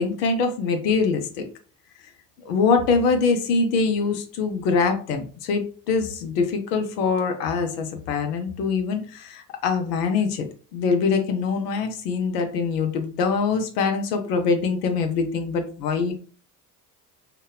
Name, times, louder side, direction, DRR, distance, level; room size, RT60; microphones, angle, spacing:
voice 1, 0.0-1.5 2.5-10.5 10.7-16.1, left 4 dB, 75° left, 6 dB, 0.6 m, -23 dB
2.7 x 2.1 x 2.2 m, 0.41 s
hypercardioid pair, 60°, 48 cm